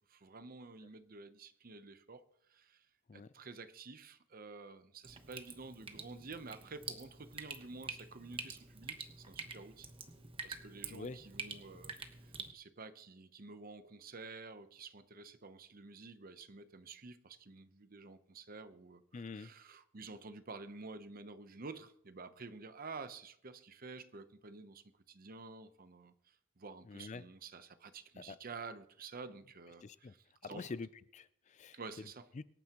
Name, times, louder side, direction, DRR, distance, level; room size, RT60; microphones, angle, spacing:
voice 1, 0.1-2.2 2.5-2.9 3.1-9.9 10.4-11.9 12.2-30.7 31.7-32.3, right 4 dB, 45° right, 0.8 m, -50 dB
Drip, 5.0-12.5, right 5 dB, 25° right, 1.1 m, -47 dB
voice 2, 19.1-19.5 26.8-27.2 28.2-28.4 29.8-30.1 30.4-31.8 32.3-32.4, left 4 dB, 35° left, 0.4 m, -46 dB
24.5 x 9.4 x 3.0 m
head